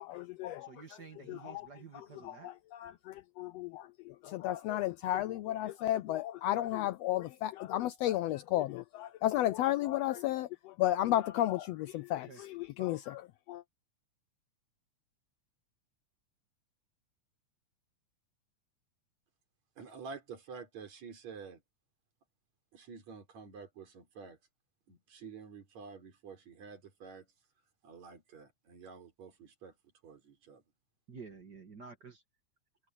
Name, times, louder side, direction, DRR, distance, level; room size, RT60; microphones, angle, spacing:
voice 1, 0.0-13.6, left 14 dB, 85° left, 1.4 m, -34 dB
voice 2, 0.7-2.5 12.3-12.4 31.1-32.2, right 5 dB, 35° right, 2.3 m, -50 dB
voice 3, 19.8-21.6 22.7-24.4 24.9-27.3 27.8-29.8 30.0-30.6, right 5 dB, 65° right, 5.5 m, -49 dB
omnidirectional pair, 3.4 m